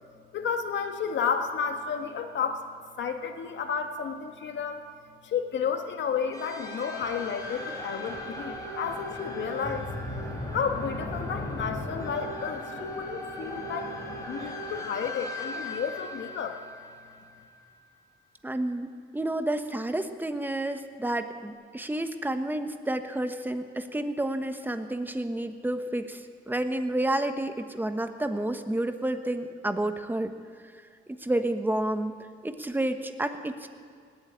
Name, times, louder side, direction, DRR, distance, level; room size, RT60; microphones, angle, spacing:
voice 1, 0.3-2.7 3.0-4.8 5.2-9.9 10.5-13.9 14.2-16.6, left 6 dB, 65° left, 5 dB, 1.7 m, -32 dB
sound 1, 6.3-17.5, left 1 dB, 15° left, 4.4 m, -37 dB
voice 2, 18.4-26.2 26.5-30.3 31.2-32.1 32.4-33.7, right 1 dB, 10° right, 8 dB, 1.2 m, -30 dB
19.0 x 8.4 x 8.7 m, 2.1 s
cardioid pair, 90°, 20 cm